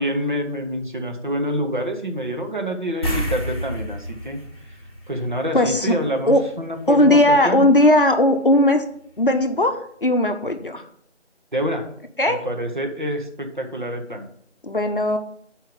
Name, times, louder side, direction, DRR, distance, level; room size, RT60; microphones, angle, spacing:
voice 1, 0.0-7.7 11.5-11.9 12.3-14.3, equal, 45° right, 3 dB, 1.1 m, -27 dB
sound 1, 3.0-5.8 6.1-6.3 9.2-9.3 9.6-9.7, equal, 20° left, 1.2 m, -29 dB
voice 2, 5.5-5.9 6.3-6.5 6.9-8.8 9.2-10.8 12.2-12.5 14.6-15.2, left 1 dB, 50° left, 6 dB, 0.7 m, -17 dB
7.3 x 4.6 x 5.2 m, 0.64 s
figure-of-eight pair, 175°, 34 cm